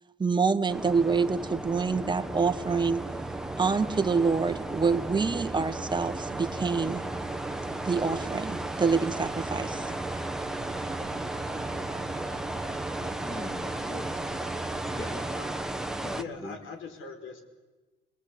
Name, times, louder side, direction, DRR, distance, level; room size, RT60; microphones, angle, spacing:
voice 1, 0.2-3.0 3.6-7.0 7.8-9.9, right 5 dB, 20° right, 1.4 m, -26 dB
sound 1, 0.7-16.2, right 1 dB, 5° right, 1.3 m, -34 dB
sound 2, 2.3-15.3, right 5 dB, 45° right, 2.0 m, -44 dB
voice 2, 13.2-14.3 14.9-15.3 16.0-16.6, left 2 dB, 20° left, 1.9 m, -42 dB
voice 3, 15.0-15.6 16.2-17.4, left 5 dB, 80° left, 5.0 m, -41 dB
29.5 x 21.0 x 8.5 m
cardioid pair, 90°, 20 cm